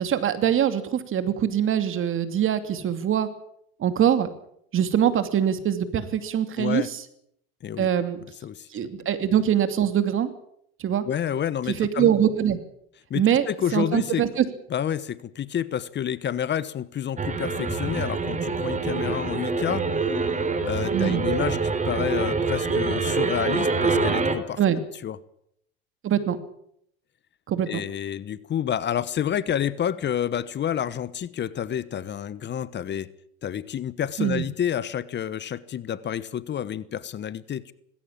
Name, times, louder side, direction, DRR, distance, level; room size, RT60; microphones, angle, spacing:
voice 1, 0.0-3.3 3.8-4.3 4.7-7.0 7.8-8.2 8.7-10.3 10.8-11.0 11.7-12.6 13.1-13.5 13.7-14.4 20.9-21.2 24.6-24.8 26.0-26.4 27.5-27.8 34.2-34.4, right 9 dB, 45° right, 2.8 m, -23 dB
voice 2, 6.6-6.9 7.6-7.9 8.4-8.7 11.1-12.1 13.1-14.2 14.7-19.9 20.6-24.6 25.0-25.2 27.7-33.1 33.4-37.7, left 9 dB, 40° left, 1.1 m, -29 dB
sound 1, 17.2-24.3, right 4 dB, 25° right, 3.7 m, -25 dB
19.5 x 16.5 x 8.8 m
supercardioid pair, 85°, 29 cm